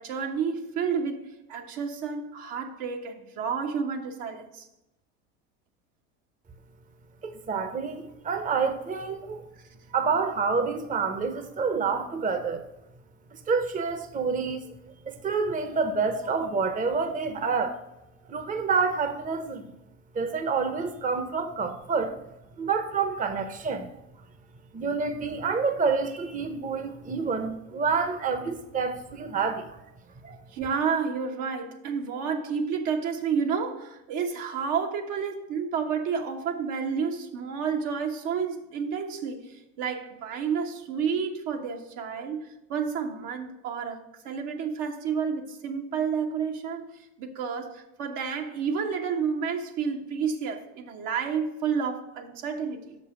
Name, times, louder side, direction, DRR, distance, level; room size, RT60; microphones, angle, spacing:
voice 1, 0.0-4.7 30.5-53.0, right 6 dB, 70° right, 3 dB, 1.4 m, -30 dB
voice 2, 7.2-9.4 9.9-12.6 13.3-14.6 15.1-17.8 18.3-19.6 20.1-22.2 22.6-23.9 24.7-29.8 30.2-30.4, right 5 dB, 25° right, 8 dB, 0.9 m, -28 dB
6.4 x 5.4 x 6.1 m, 0.93 s
supercardioid pair, 90°, 32 cm